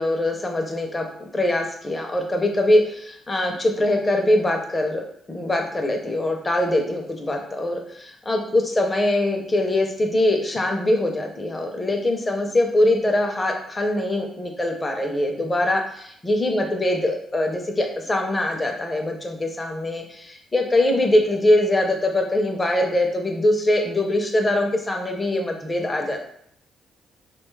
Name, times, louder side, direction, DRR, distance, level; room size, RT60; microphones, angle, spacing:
voice 1, 0.0-26.2, left 1 dB, 20° left, 2 dB, 0.5 m, -22 dB
2.9 x 2.2 x 3.1 m, 0.69 s
cardioid pair, 90°, 0 cm